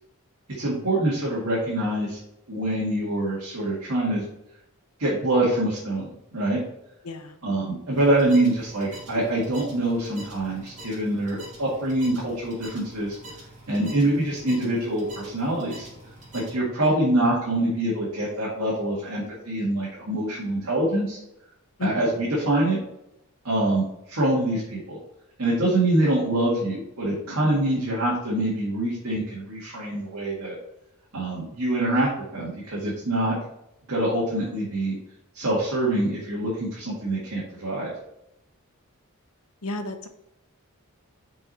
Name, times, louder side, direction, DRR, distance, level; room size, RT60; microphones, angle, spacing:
voice 1, 0.5-2.2 2.5-4.2 5.0-6.6 7.4-13.2 13.7-15.9 16.3-21.2 21.8-22.8 23.4-25.0 25.4-30.6 31.1-33.4 33.9-35.0 35.3-37.9, right 1 dB, 70° right, -6 dB, 1.9 m, -25 dB
voice 2, 7.0-7.4 13.8-13.9 16.8-16.9 21.8-22.0 39.6-40.1, left 3 dB, 75° left, 7 dB, 0.9 m, -32 dB
sound 1, 7.9-16.5, right 1 dB, 35° right, 2.6 m, -45 dB
6.0 x 4.9 x 4.2 m, 0.83 s
head